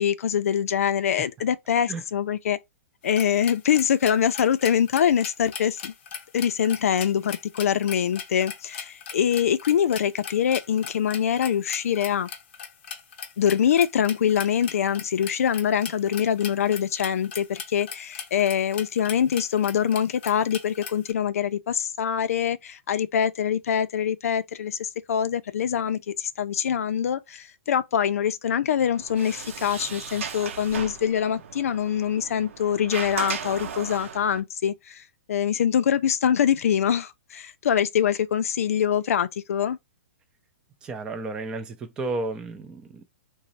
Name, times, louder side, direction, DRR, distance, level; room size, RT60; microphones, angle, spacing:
voice 1, 0.0-2.6 3.0-5.9 6.3-12.3 13.4-39.8, left 8 dB, 85° left, 0.3 m, -24 dB
sound 1, 3.0-21.1, left 7 dB, 50° left, 0.7 m, -39 dB
Sliding door, 28.8-34.4, right 7 dB, 60° right, 0.6 m, -36 dB
voice 2, 40.8-43.0, right 3 dB, 10° right, 0.4 m, -32 dB
3.0 x 2.0 x 3.9 m
hypercardioid pair, 165°, 8 cm